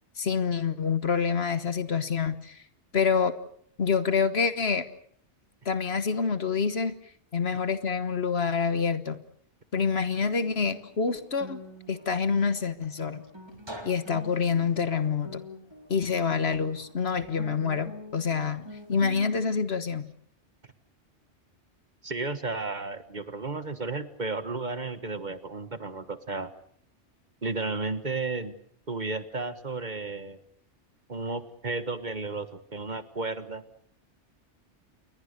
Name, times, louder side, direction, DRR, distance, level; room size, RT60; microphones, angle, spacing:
voice 1, 0.2-2.6 2.9-3.3 3.8-4.9 5.6-6.9 7.3-9.2 9.7-11.6 11.9-13.2 13.8-15.4 15.9-20.1, left 5 dB, 60° left, 12 dB, 1.6 m, -27 dB
Guitar, 10.2-19.6, equal, 20° right, 3.6 m, -45 dB
voice 2, 22.0-26.5 27.4-28.5 28.9-30.4 31.1-33.6, right 3 dB, 40° right, 12 dB, 1.5 m, -33 dB
29.0 x 22.0 x 6.7 m, 0.63 s
omnidirectional pair, 1.2 m